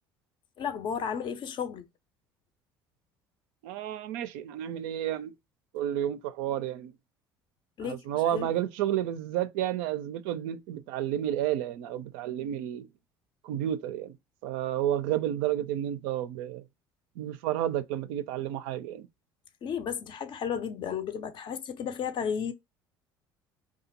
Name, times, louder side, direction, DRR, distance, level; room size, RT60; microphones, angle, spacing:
voice 1, 0.6-1.8 7.8-8.0 8.3-8.5 19.6-22.5, left 7 dB, 40° left, 0.5 m, -33 dB
voice 2, 3.6-5.3 5.7-6.9 7.8-12.9 13.4-14.1 14.4-16.6 17.2-19.1, right 11 dB, 60° right, 0.4 m, -31 dB
2.8 x 2.3 x 2.8 m
figure-of-eight pair, 60°, 12 cm